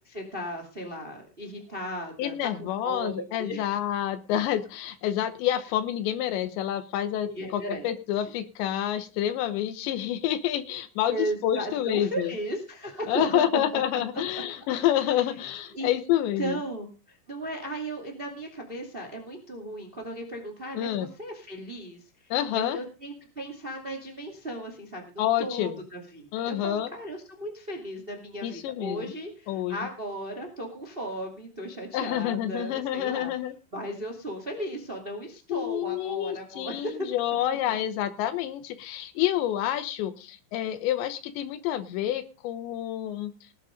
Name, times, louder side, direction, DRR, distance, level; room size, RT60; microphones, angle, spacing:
voice 1, 0.0-3.8 7.2-7.9 11.1-13.4 15.7-15.9 16.4-25.0 25.4-33.3 33.7-37.1 37.7-37.8, right 1 dB, 25° right, 4 dB, 1.3 m, -36 dB
voice 2, 2.2-12.3 13.1-16.6 20.7-21.1 22.3-22.8 25.2-25.8 26.3-26.9 28.4-29.1 29.5-29.8 31.9-33.5 35.5-43.3, left 11 dB, 75° left, 13 dB, 3.1 m, -28 dB
18.5 x 8.2 x 5.2 m, 0.34 s
omnidirectional pair, 5.4 m